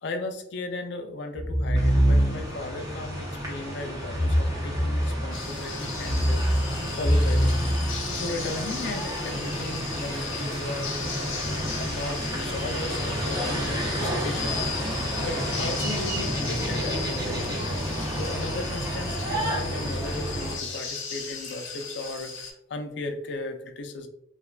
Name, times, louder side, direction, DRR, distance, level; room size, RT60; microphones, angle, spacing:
voice 1, 0.0-14.6 14.9-17.7 18.2-24.1, left 2 dB, 60° left, 5 dB, 0.4 m, -36 dB
sound 1, 1.3-2.6 4.0-5.4 5.9-8.4, equal, 85° right, 1.0 m, -24 dB
sound 2, 1.8-20.6, equal, 15° right, 0.5 m, -31 dB
sound 3, 5.3-22.5, left 5 dB, 85° left, 0.8 m, -37 dB
3.3 x 2.1 x 2.3 m, 0.77 s
head